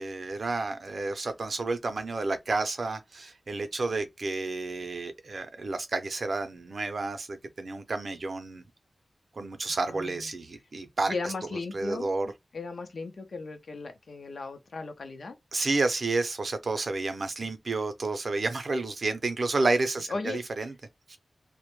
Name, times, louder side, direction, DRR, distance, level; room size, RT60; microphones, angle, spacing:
voice 1, 0.0-8.6 9.3-11.3 11.7-12.3 15.5-20.7 21.1-21.2, right 3 dB, 60° right, 0.5 m, -30 dB
voice 2, 9.7-10.3 11.1-12.1 12.5-15.4 17.4-17.5 20.1-20.4, left 3 dB, 75° left, 0.5 m, -36 dB
2.1 x 2.1 x 3.0 m
wide cardioid pair, 110°, 0 cm